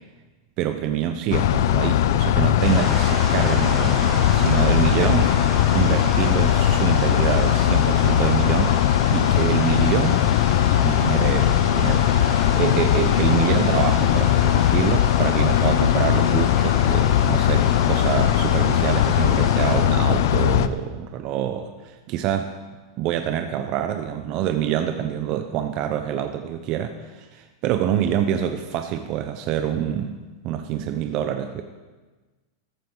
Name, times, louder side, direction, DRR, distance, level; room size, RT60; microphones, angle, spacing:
voice 1, 0.6-5.3 5.7-10.3 10.8-22.5 23.0-30.2 30.4-31.6, right 10 dB, 40° right, 6 dB, 0.8 m, -26 dB
sound 1, 1.3-20.7, left 11 dB, 65° left, 0.6 m, -19 dB
sound 2, 2.6-19.8, left 1 dB, 10° left, 5.1 m, -33 dB
14.0 x 13.0 x 3.9 m, 1.3 s
supercardioid pair, 150°, 2 cm